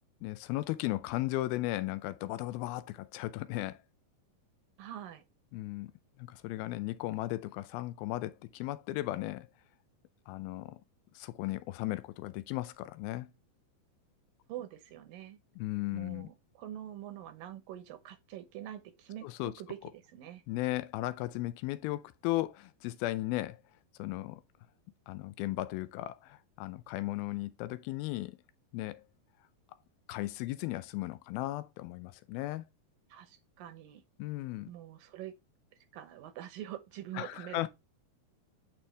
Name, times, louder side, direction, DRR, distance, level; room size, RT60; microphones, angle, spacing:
voice 1, 0.2-3.8 5.5-5.9 6.2-9.5 10.3-10.8 11.2-13.3 15.6-16.3 19.2-19.5 20.5-23.6 24.0-24.4 25.1-28.4 28.7-29.0 30.1-32.7 34.2-34.7 37.2-37.7, left 17 dB, 85° left, 2.4 m, -36 dB
voice 2, 4.8-5.2 14.5-15.4 15.9-20.4 33.1-34.0 34.7-35.3 35.8-37.7, right 12 dB, 75° right, 2.6 m, -45 dB
9.0 x 4.5 x 3.3 m
omnidirectional pair, 4.3 m